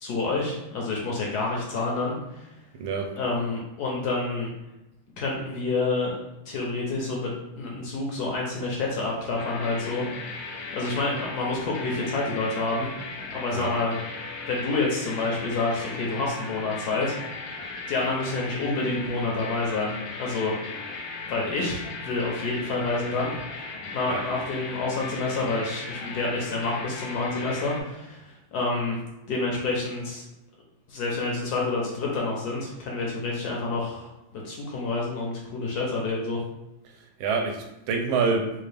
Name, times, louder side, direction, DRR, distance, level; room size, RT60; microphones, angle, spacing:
voice 1, 0.0-2.5 3.2-4.5 5.2-6.2 6.5-10.1 10.7-12.9 13.3-14.0 14.5-17.2 17.9-19.9 20.2-20.5 21.2-23.3 23.9-29.0 29.3-30.2 30.9-36.4, left 3 dB, 70° left, -2 dB, 1.0 m, -28 dB
voice 2, 2.8-3.1 13.5-13.7 24.1-24.2 37.2-38.5, right 4 dB, 80° right, 3 dB, 1.3 m, -26 dB
sound 1, 9.4-27.8, left 3 dB, 85° left, 0.8 m, -37 dB
3.5 x 2.4 x 3.2 m, 0.94 s
omnidirectional pair, 2.2 m